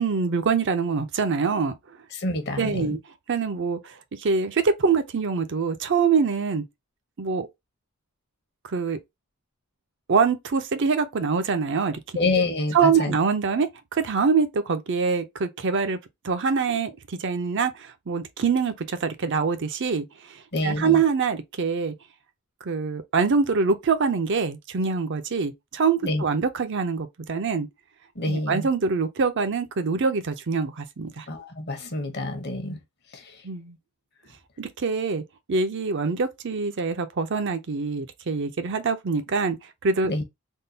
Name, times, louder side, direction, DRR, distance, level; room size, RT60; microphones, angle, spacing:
voice 1, 0.0-2.0 2.6-3.0 3.3-6.6 7.2-7.5 8.6-9.0 10.1-12.0 12.7-16.0 16.2-21.9 22.6-27.7 28.3-31.3 33.4-33.8 34.6-35.2 35.5-40.2, right 5 dB, 55° right, 0.5 m, -24 dB
voice 2, 2.1-3.0 12.1-13.2 20.5-21.0 26.0-26.2 28.1-28.7 31.3-32.8 33.1-33.4 40.1-40.2, left 2 dB, 50° left, 0.9 m, -27 dB
3.6 x 2.3 x 2.7 m
head